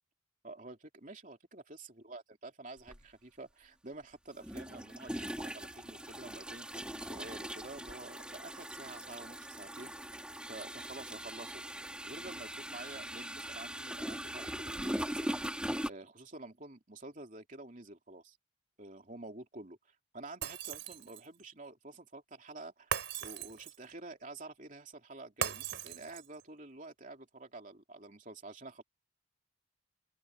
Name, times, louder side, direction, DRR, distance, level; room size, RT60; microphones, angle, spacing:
voice 1, 0.4-10.2 10.5-15.6 15.9-18.4 18.8-22.9 23.2-28.8, right 2 dB, 40° right, 3.2 m, -49 dB
sound 1, 2.9-3.0 4.4-15.9, right 1 dB, 5° right, 2.7 m, -41 dB
Shatter, 20.4-21.4 22.9-23.9 25.4-26.4, right 7 dB, 65° right, 3.5 m, -38 dB
open air
head